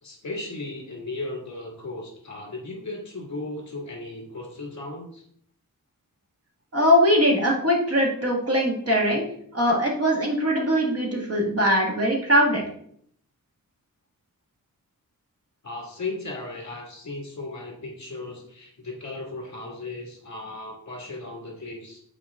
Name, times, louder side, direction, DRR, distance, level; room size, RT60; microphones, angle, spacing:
voice 1, 0.0-5.2 15.6-22.0, left 2 dB, 50° left, 0 dB, 2.1 m, -36 dB
voice 2, 6.7-9.2 9.5-12.6, equal, 40° right, 0 dB, 1.6 m, -21 dB
7.4 x 4.3 x 3.6 m, 0.65 s
wide cardioid pair, 130°, 35 cm